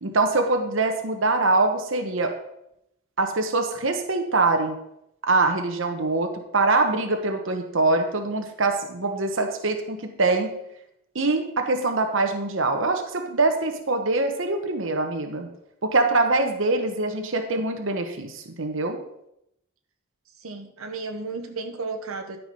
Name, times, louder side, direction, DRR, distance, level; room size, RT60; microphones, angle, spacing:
voice 1, 0.0-2.3 3.2-4.8 5.2-10.5 11.1-15.5 15.8-19.0, right 3 dB, 65° right, 4 dB, 1.1 m, -24 dB
voice 2, 20.4-22.4, right 3 dB, 90° right, 5 dB, 1.1 m, -34 dB
12.5 x 4.7 x 5.4 m, 0.79 s
head